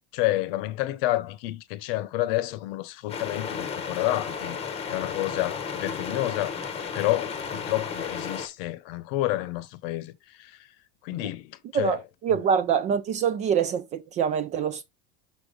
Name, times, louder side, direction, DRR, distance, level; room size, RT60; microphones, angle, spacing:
voice 1, 0.1-6.6 6.9-10.7 11.0-12.0 12.3-12.4, left 16 dB, 65° left, 0.9 m, -29 dB
sound 1, 3.1-8.5, left 6 dB, 20° left, 0.9 m, -33 dB
voice 2, 11.7-14.8, right 7 dB, 25° right, 0.3 m, -25 dB
5.9 x 5.0 x 3.9 m
cardioid pair, 170°, 31 cm